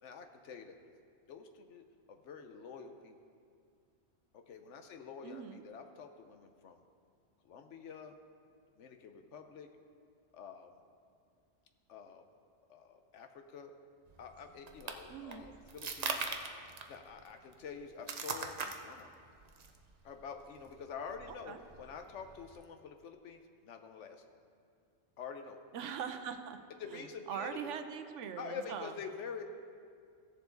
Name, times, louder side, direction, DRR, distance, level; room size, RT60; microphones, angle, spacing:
voice 1, 0.0-0.8 1.3-3.1 4.3-6.8 7.4-8.2 8.8-9.7 10.3-10.8 11.9-12.3 12.7-13.7 14.2-16.3 16.9-19.1 20.0-24.4 25.2-25.6 26.8-27.6 28.4-29.4, left 6 dB, 80° left, 6 dB, 1.1 m, -47 dB
voice 2, 5.2-5.6 15.1-15.5 21.5-21.6 25.7-26.6 26.9-28.9, right 7 dB, 90° right, 8 dB, 1.0 m, -42 dB
sound 1, 14.1-22.6, right 4 dB, 45° right, 0.6 m, -43 dB
16.0 x 7.1 x 3.9 m, 2.2 s
omnidirectional pair, 1.2 m